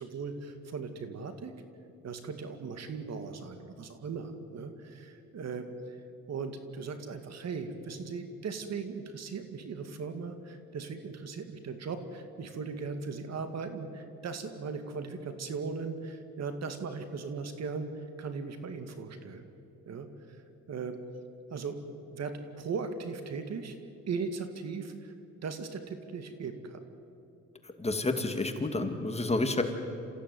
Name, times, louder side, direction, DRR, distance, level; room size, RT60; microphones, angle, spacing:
voice 1, 0.0-1.5 2.0-6.0 6.3-17.9 18.2-19.4 19.9-20.4 20.7-21.0 21.5-21.8 22.1-23.8 24.1-25.1 25.4-26.8, right 5 dB, 60° right, 8 dB, 2.3 m, -38 dB
voice 2, 27.8-29.6, left 2 dB, 20° left, 6 dB, 2.4 m, -29 dB
28.0 x 15.5 x 9.5 m, 2.7 s
cardioid pair, 90°, 30 cm